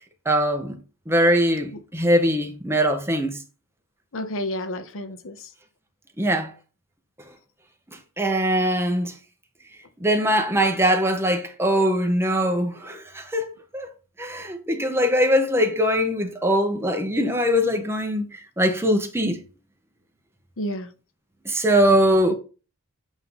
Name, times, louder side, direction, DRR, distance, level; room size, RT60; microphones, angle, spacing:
voice 1, 0.3-0.8 1.1-3.4 6.2-6.5 8.2-9.1 10.0-13.9 14.2-19.4 21.4-22.3, equal, 10° right, 0.8 m, -22 dB
voice 2, 4.1-5.5 20.6-20.9 21.9-22.2, left 1 dB, 60° left, 0.8 m, -30 dB
8.1 x 2.7 x 5.4 m
head